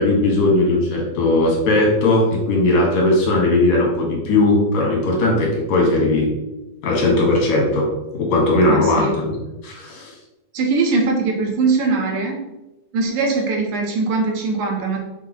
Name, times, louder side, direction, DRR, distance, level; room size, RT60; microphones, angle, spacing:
voice 1, 0.0-6.3 6.8-9.4 9.6-10.1, left 2 dB, 75° left, -1 dB, 3.2 m, -18 dB
voice 2, 8.7-9.1 10.5-12.4 12.9-15.0, right 4 dB, 80° right, 1 dB, 2.7 m, -21 dB
7.4 x 6.3 x 3.2 m, 1.0 s
omnidirectional pair, 3.4 m